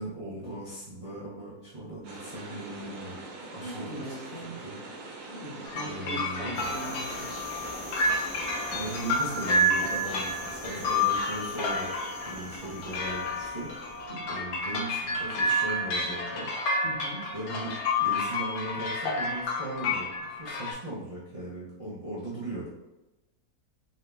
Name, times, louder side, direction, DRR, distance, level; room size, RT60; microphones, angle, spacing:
voice 1, 0.0-3.1 3.5-4.8 5.8-6.7 8.7-11.9 12.2-13.7 14.3-16.5 17.3-22.7, right 2 dB, 25° right, -8 dB, 0.8 m, -38 dB
sound 1, 2.0-9.0, right 2 dB, 75° right, 1.3 m, -43 dB
voice 2, 3.6-4.6 5.3-7.3 14.1-14.2 16.8-17.3, right 1 dB, 45° left, -6 dB, 1.0 m, -40 dB
sound 2, 5.7-20.7, left 1 dB, 70° left, 1.1 m, -30 dB
sound 3, 6.5-14.1, equal, 20° left, 0.9 m, -42 dB
4.1 x 2.7 x 3.4 m, 1.0 s
omnidirectional pair, 1.7 m